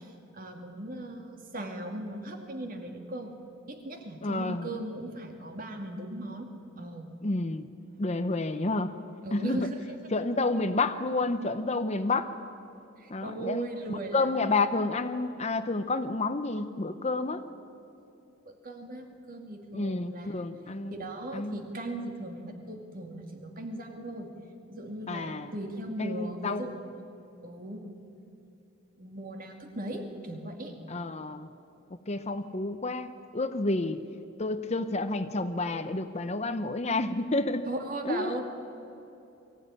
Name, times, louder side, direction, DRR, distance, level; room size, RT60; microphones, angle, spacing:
voice 1, 0.0-3.3 3.7-6.5 6.8-7.1 7.6-7.7 9.2-9.8 13.0-14.5 18.4-20.3 20.9-24.3 24.7-27.0 27.4-27.8 29.0-30.8 37.7-38.4, right 1 dB, 45° right, 4 dB, 2.3 m, -38 dB
voice 2, 4.2-4.7 7.2-7.7 8.0-8.9 9.3-9.7 10.1-12.3 13.1-17.4 19.7-21.1 21.3-21.6 25.1-25.5 26.0-26.7 30.9-31.5 32.1-34.0 34.4-37.7 38.0-38.4, left 2 dB, 35° left, 10 dB, 0.8 m, -30 dB
23.0 x 15.5 x 9.8 m, 2.8 s
head